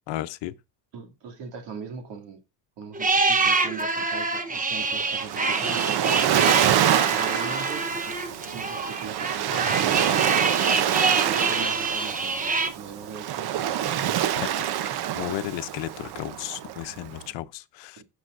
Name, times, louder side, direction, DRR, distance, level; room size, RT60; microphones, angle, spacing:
voice 1, 0.1-0.5 14.4-18.0, left 15 dB, 85° left, 0.8 m, -34 dB
voice 2, 0.9-2.4 2.8-6.4 7.1-8.2 8.5-10.3 11.1-12.4 12.7-13.5 18.0-18.1, right 6 dB, 90° right, 2.6 m, -40 dB
sound 1, 2.9-12.7, right 3 dB, 20° right, 1.0 m, -26 dB
Waves surf, 4.8-17.2, right 10 dB, 65° right, 0.9 m, -26 dB
18.0 x 6.9 x 2.6 m
cardioid pair, 135°, 42 cm